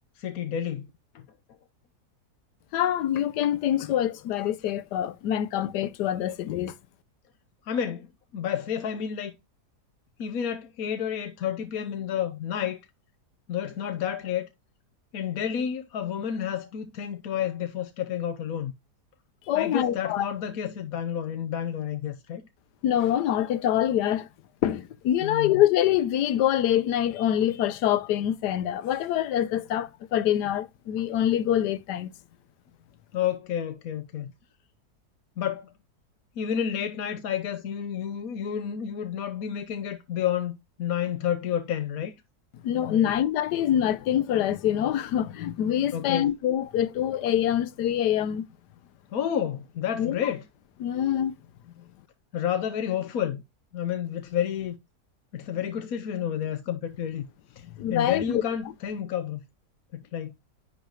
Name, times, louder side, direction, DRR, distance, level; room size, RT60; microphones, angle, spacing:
voice 1, 0.2-0.9 1.1-1.2 7.6-8.1 8.3-9.4 10.2-12.8 13.5-14.4 15.1-18.7 19.5-22.4 25.2-25.5 33.1-34.3 35.4-35.7 36.4-42.2 42.8-43.1 45.9-46.3 49.1-50.4 52.3-53.4 53.7-54.7 55.3-57.3 57.6-57.7 57.9-59.4 59.9-60.3, left 9 dB, 65° left, 1.2 m, -30 dB
voice 2, 2.7-6.7 19.5-20.2 22.8-24.3 24.6-32.1 42.6-48.4 50.0-50.1 50.8-51.3 57.8-58.4, left 11 dB, 90° left, 1.3 m, -25 dB
10.0 x 4.0 x 3.0 m
omnidirectional pair, 1.7 m